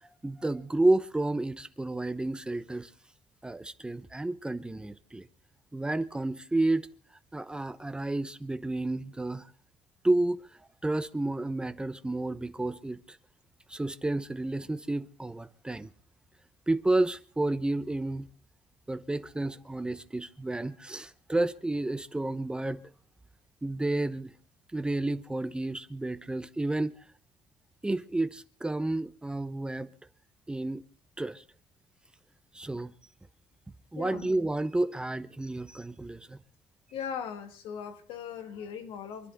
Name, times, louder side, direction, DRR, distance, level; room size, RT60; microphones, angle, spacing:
voice 1, 0.2-2.9 3.4-5.3 5.7-6.9 7.3-9.5 10.0-10.4 10.8-13.2 13.7-15.9 16.7-18.3 18.9-22.8 23.6-24.3 24.7-26.9 27.8-29.9 30.5-30.8 31.2-31.4 32.5-32.9 33.9-36.4, right 2 dB, 10° right, 0.9 m, -30 dB
voice 2, 33.9-34.3 36.9-39.3, left 7 dB, 80° left, 2.2 m, -39 dB
27.5 x 10.5 x 4.0 m
cardioid pair, 115°, 9 cm